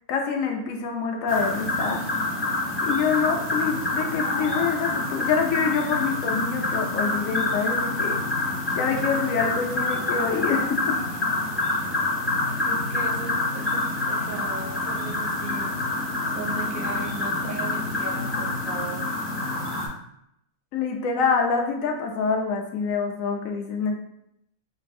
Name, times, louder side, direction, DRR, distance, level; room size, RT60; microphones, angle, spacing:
voice 1, 0.1-2.0 2.8-11.0 20.7-24.0, left 5 dB, 70° left, 3 dB, 1.0 m, -26 dB
sound 1, 1.3-19.9, left 2 dB, 20° left, 0.3 m, -27 dB
voice 2, 12.7-15.7 16.3-19.1, right 4 dB, 75° right, 1 dB, 1.1 m, -37 dB
3.9 x 2.6 x 2.5 m, 0.76 s
omnidirectional pair, 1.5 m